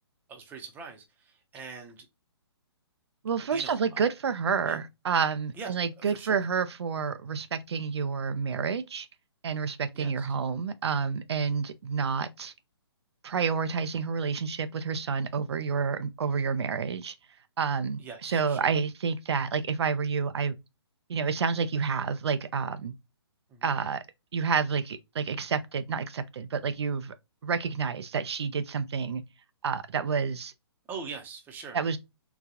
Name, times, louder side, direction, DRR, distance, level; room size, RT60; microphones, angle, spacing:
voice 1, 0.3-1.0 1.5-2.1 3.5-4.0 4.6-4.8 5.6-5.7 6.1-6.4 10.0-10.3 18.0-18.7 23.5-23.7 30.9-31.8, right 5 dB, 15° right, 0.7 m, -42 dB
voice 2, 3.2-9.1 9.4-12.5 13.2-17.1 17.6-20.6 21.1-22.9 23.6-24.0 24.3-27.1 27.4-29.2 29.6-30.5 31.7-32.0, right 6 dB, 70° right, 0.4 m, -29 dB
3.8 x 2.3 x 2.8 m
hypercardioid pair, 135°, 14 cm